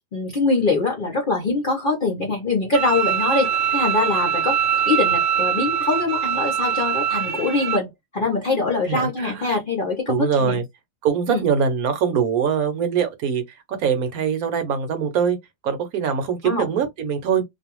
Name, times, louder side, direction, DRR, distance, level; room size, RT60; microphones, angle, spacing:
voice 1, 0.1-4.6 4.8-10.6 11.3-11.5 16.4-16.7, left 3 dB, 45° left, 0.6 m, -23 dB
Bowed string instrument, 2.7-7.8, right 9 dB, 50° right, 0.9 m, -23 dB
voice 2, 8.9-9.5 10.1-10.6 11.0-13.4 13.8-15.4 15.6-17.4, right 7 dB, 70° right, 1.1 m, -22 dB
2.6 x 2.2 x 2.9 m
omnidirectional pair, 1.7 m